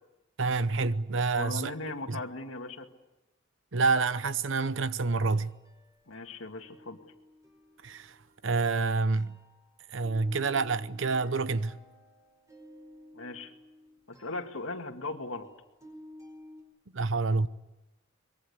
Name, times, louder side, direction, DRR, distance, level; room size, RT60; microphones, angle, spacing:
voice 1, 0.4-1.7 2.1-2.2 3.7-5.5 7.8-8.1 8.4-9.4 9.9-11.8 16.9-17.5, right 3 dB, 65° right, 0.8 m, -28 dB
voice 2, 1.3-2.9 6.1-7.0 13.1-13.5 14.1-15.5, left 2 dB, 85° left, 2.2 m, -38 dB
sound 1, 4.8-6.3 6.6-16.6, left 1 dB, 15° right, 4.9 m, -54 dB
24.0 x 22.0 x 8.3 m
head